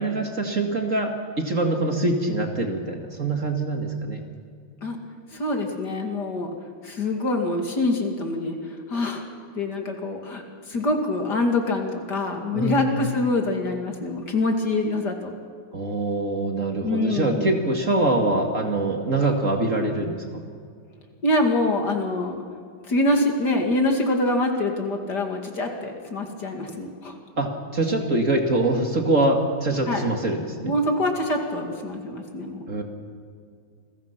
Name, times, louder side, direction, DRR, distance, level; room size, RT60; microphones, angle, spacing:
voice 1, 0.0-4.2 12.5-12.9 15.7-20.4 27.4-30.7 32.7-32.8, right 2 dB, 35° right, 3 dB, 2.3 m, -24 dB
voice 2, 5.3-6.5 6.8-9.2 9.6-15.3 16.8-17.5 21.2-22.4 22.9-27.2 29.9-30.0 30.6-32.8, left 2 dB, 50° left, 3 dB, 2.8 m, -25 dB
29.0 x 21.5 x 5.9 m, 2.2 s
omnidirectional pair, 2.4 m